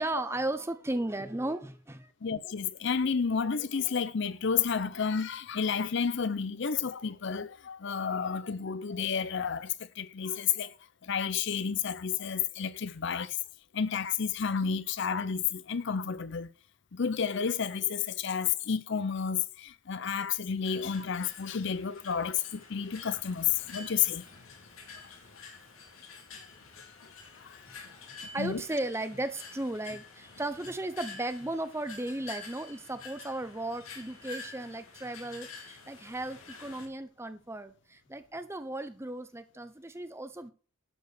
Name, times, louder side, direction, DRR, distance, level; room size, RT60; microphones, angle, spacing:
voice 1, 0.0-2.1 27.9-28.0 28.3-40.5, right 1 dB, 10° right, 0.7 m, -35 dB
voice 2, 2.2-10.7 11.0-13.4 13.7-16.5 16.9-24.2 27.4-27.6 28.4-28.6, left 7 dB, 55° left, 0.5 m, -31 dB
sound 1, 20.6-36.9, left 4 dB, 80° left, 3.0 m, -48 dB
11.5 x 4.8 x 6.5 m
head